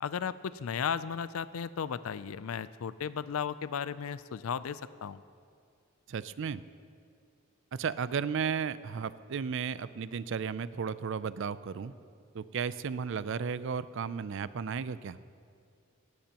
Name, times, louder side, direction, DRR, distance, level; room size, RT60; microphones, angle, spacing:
voice 1, 0.0-5.2, left 7 dB, 85° left, 16 dB, 0.4 m, -35 dB
voice 2, 6.1-6.6 7.7-11.9 12.3-15.2, right 6 dB, 65° right, 16 dB, 0.4 m, -34 dB
18.0 x 17.0 x 3.0 m, 2.3 s
head